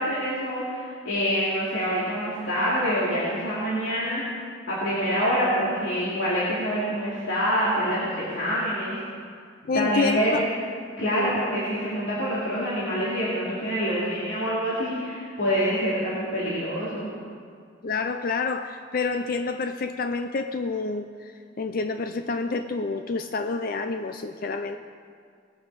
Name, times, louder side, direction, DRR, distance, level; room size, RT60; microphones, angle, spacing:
voice 1, 0.0-4.2 4.7-9.0 9.7-10.4 11.0-17.1, equal, 70° left, -8 dB, 2.7 m, -26 dB
voice 2, 9.6-10.4 11.0-11.4 17.8-21.3 21.6-24.8, left 4 dB, 45° left, 8 dB, 0.4 m, -28 dB
19.5 x 8.6 x 4.8 m, 2.1 s
head